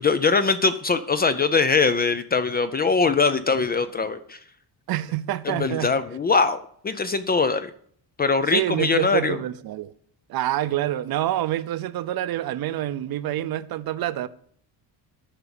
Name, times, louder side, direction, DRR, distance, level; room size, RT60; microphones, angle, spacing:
voice 1, 0.0-4.4 5.5-6.6 6.8-7.7 8.2-9.4, left 4 dB, 25° left, 0.3 m, -22 dB
voice 2, 4.9-5.9 8.5-9.9 10.3-14.3, right 13 dB, 60° right, 0.7 m, -27 dB
10.0 x 5.9 x 6.9 m
cardioid pair, 155°, 42 cm